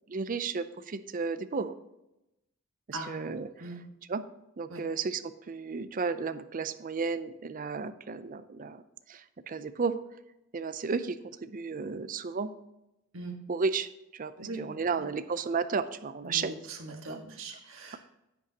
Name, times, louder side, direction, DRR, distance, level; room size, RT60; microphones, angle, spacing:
voice 1, 0.1-1.7 2.9-3.5 4.1-4.2 4.6-8.8 9.1-10.0 10.5-12.5 13.5-16.5 17.1-17.2, right 4 dB, 40° right, 12 dB, 0.5 m, -33 dB
voice 2, 14.4-15.0 16.2-18.0, right 2 dB, 70° right, 2 dB, 1.6 m, -41 dB
10.0 x 8.4 x 2.9 m, 0.90 s
head